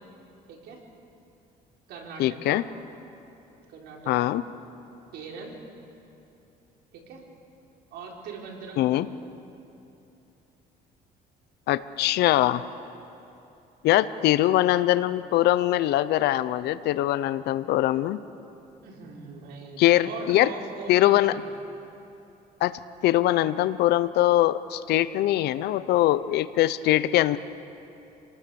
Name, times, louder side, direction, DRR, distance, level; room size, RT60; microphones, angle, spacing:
voice 1, 0.5-0.8 1.9-2.6 3.7-4.3 5.1-5.6 6.9-7.2 7.9-9.1 14.3-14.5 18.8-21.4, right 4 dB, 80° right, -1 dB, 4.3 m, -41 dB
voice 2, 2.2-2.6 4.1-4.4 8.8-9.1 11.7-12.6 13.8-18.2 19.8-20.5 20.9-21.4 22.6-22.7 23.0-27.4, left 14 dB, 75° left, 15 dB, 0.7 m, -22 dB
27.0 x 19.5 x 7.0 m, 2.9 s
cardioid pair, 110°, 17 cm